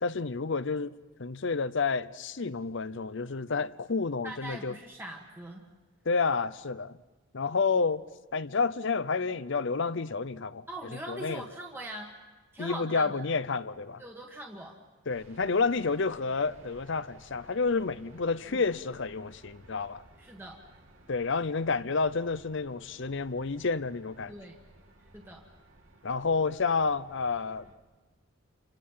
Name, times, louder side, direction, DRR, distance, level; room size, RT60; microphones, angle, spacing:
voice 1, 0.0-0.9 1.2-4.7 6.1-7.0 7.3-8.1 8.3-10.7 11.1-11.4 12.6-14.0 15.1-20.0 21.1-24.3 26.0-27.7, left 4 dB, 60° left, 0.7 m, -30 dB
voice 2, 4.2-5.6 10.7-12.1 12.5-13.1 14.0-14.8 18.5-18.6 20.2-20.6 24.3-24.5 25.1-25.4, right 1 dB, 10° right, 1.6 m, -41 dB
sound 1, 15.1-27.8, right 1 dB, 70° right, 2.9 m, -57 dB
30.0 x 26.0 x 5.7 m
head